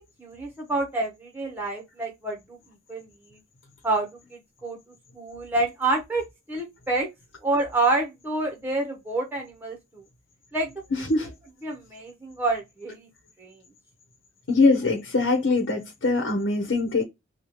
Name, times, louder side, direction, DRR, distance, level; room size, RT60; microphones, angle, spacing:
voice 1, 0.2-2.6 2.9-3.1 3.8-4.8 5.1-7.1 7.4-10.0 10.5-11.1 11.6-13.1 13.4-13.5, right 2 dB, 10° right, 0.9 m, -28 dB
voice 2, 14.5-17.0, left 3 dB, 85° left, 1.0 m, -22 dB
3.3 x 2.3 x 4.4 m
head